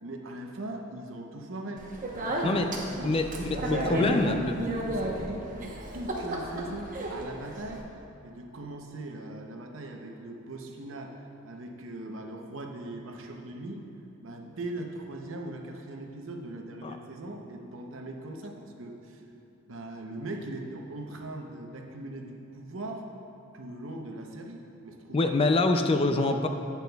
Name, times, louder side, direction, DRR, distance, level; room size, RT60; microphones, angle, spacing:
voice 1, 0.0-1.9 2.1-3.5 3.9-7.9 8.2-11.2 11.4-13.8 14.2-19.2 19.7-23.0 23.5-25.3 26.2-26.4, right 1 dB, 70° right, 2 dB, 0.8 m, -39 dB
Speech, 1.8-7.8, right 1 dB, 40° right, 0.9 m, -33 dB
voice 2, 3.7-4.5 16.8-17.0 25.1-26.5, left 2 dB, 30° left, 6 dB, 0.4 m, -25 dB
10.5 x 8.3 x 2.3 m, 2.7 s
head